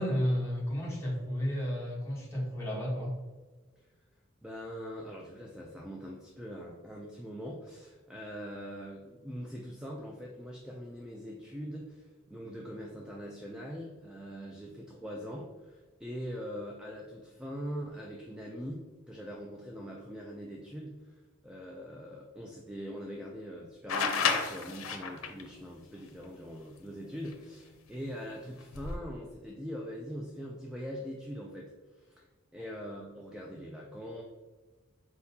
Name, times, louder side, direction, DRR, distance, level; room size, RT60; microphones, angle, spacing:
voice 1, 0.0-3.1 32.6-32.7, equal, 15° left, -6 dB, 1.2 m, -32 dB
voice 2, 4.4-32.3 32.5-34.2, equal, 5° right, -1 dB, 0.3 m, -42 dB
sound 1, 23.9-25.4 27.3-27.4 28.6-29.0, left 5 dB, 90° left, 0.6 m, -30 dB
4.4 x 3.7 x 2.8 m, 1.3 s
head